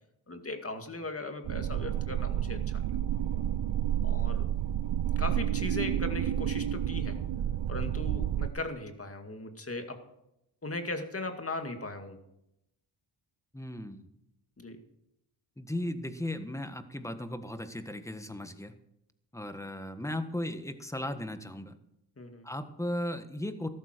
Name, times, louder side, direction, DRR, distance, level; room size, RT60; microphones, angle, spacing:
voice 1, 0.3-2.8 4.0-4.5 5.2-7.2 7.7-10.0 10.6-12.2 14.6-14.8 22.2-22.5, left 2 dB, 30° left, 6 dB, 2.2 m, -38 dB
sound 1, 1.4-8.5, right 11 dB, 60° right, 0.8 m, -30 dB
voice 2, 13.5-14.1 15.6-18.7 19.3-21.8 22.4-23.7, left 1 dB, 5° left, 9 dB, 1.5 m, -36 dB
13.5 x 12.5 x 4.5 m, 0.83 s
cardioid pair, 70°, 49 cm